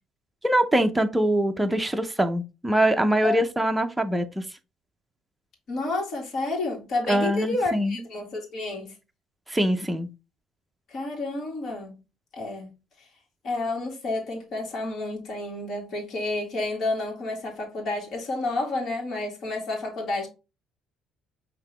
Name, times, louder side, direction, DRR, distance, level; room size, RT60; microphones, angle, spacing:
voice 1, 0.4-4.4 7.1-8.0 9.5-10.1, right 1 dB, 5° right, 0.6 m, -23 dB
voice 2, 5.7-8.9 10.9-12.0 12.3-12.7 13.0-13.1 13.4-20.3, left 2 dB, 50° left, 2.0 m, -30 dB
5.6 x 2.9 x 3.2 m
cardioid pair, 115°, 0 cm